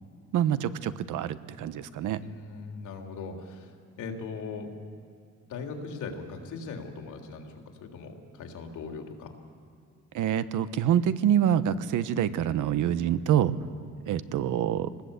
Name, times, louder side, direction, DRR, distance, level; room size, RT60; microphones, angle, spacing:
voice 1, 0.3-2.2 10.1-13.6 14.1-14.9, right 10 dB, 80° right, 13 dB, 1.1 m, -26 dB
voice 2, 2.2-4.7 5.5-9.3, left 4 dB, 80° left, 3 dB, 3.5 m, -39 dB
24.5 x 20.0 x 8.3 m, 2.2 s
cardioid pair, 90°, 30 cm